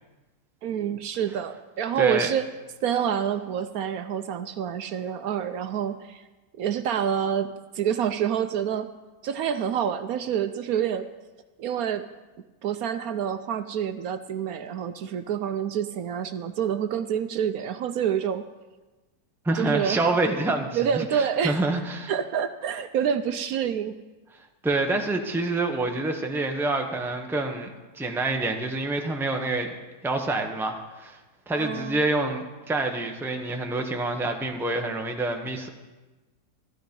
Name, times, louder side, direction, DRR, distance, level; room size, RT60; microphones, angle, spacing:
voice 1, 0.6-2.5 2.8-6.2 6.6-8.9 9.2-11.1 11.6-12.1 12.6-18.5 19.5-20.0 20.7-21.6 22.1-23.9 31.5-32.0, right 8 dB, 70° right, 9 dB, 1.0 m, -27 dB
voice 2, 2.0-2.3 19.4-22.1 24.6-29.7 30.0-31.2 31.5-35.7, right 2 dB, ahead, 3 dB, 0.8 m, -27 dB
14.0 x 12.5 x 5.3 m, 1.2 s
omnidirectional pair, 1.7 m